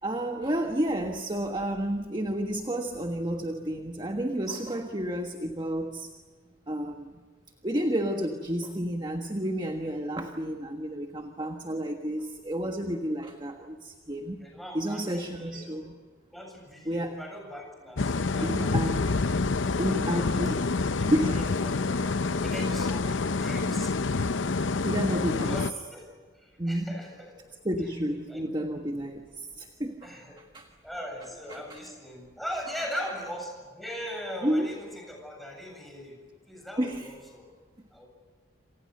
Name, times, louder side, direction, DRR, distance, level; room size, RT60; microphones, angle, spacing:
voice 1, 0.0-6.1 6.7-7.1 7.6-14.4 14.7-15.9 16.8-17.2 18.4-19.1 19.8-20.6 21.1-21.5 21.8-22.1 24.6-25.6 26.6-27.0 27.6-30.7 31.5-31.8 32.7-32.9 34.4-34.7 36.8-37.1, right 1 dB, 25° right, 4 dB, 1.5 m, -31 dB
voice 2, 14.4-15.9 16.3-19.1 19.8-20.6 21.0-21.9 22.2-23.9 25.5-26.1 26.4-27.4 28.3-28.4 30.0-30.4 30.8-36.2 36.5-37.5 37.9-38.1, equal, ahead, 0 dB, 7.9 m, -40 dB
sound 1, 18.0-25.7, left 3 dB, 70° left, 0.7 m, -27 dB
28.0 x 27.5 x 6.7 m, 1.5 s
head